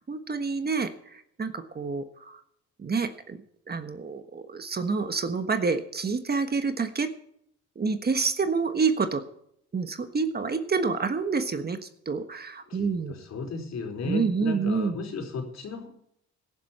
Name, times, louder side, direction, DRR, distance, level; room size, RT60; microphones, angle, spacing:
voice 1, 0.0-2.4 2.8-3.4 3.7-7.1 7.7-9.2 9.7-13.2 14.0-15.0, right 4 dB, 30° right, 8 dB, 1.4 m, -28 dB
voice 2, 12.7-15.9, left 4 dB, 60° left, 3 dB, 4.2 m, -35 dB
17.5 x 10.5 x 4.3 m, 0.70 s
cardioid pair, 90°, 30 cm